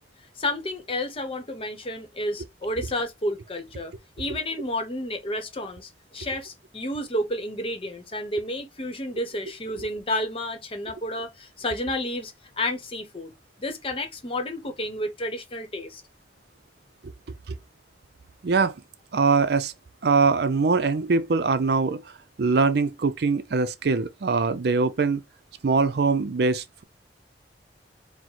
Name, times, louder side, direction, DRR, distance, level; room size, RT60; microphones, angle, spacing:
voice 1, 0.4-13.3 13.6-16.0, left 1 dB, 30° left, 0.9 m, -31 dB
voice 2, 18.4-18.7 19.1-19.7 20.0-22.0 22.4-25.2 25.6-26.8, right 4 dB, 65° right, 0.5 m, -22 dB
4.6 x 2.1 x 4.0 m
head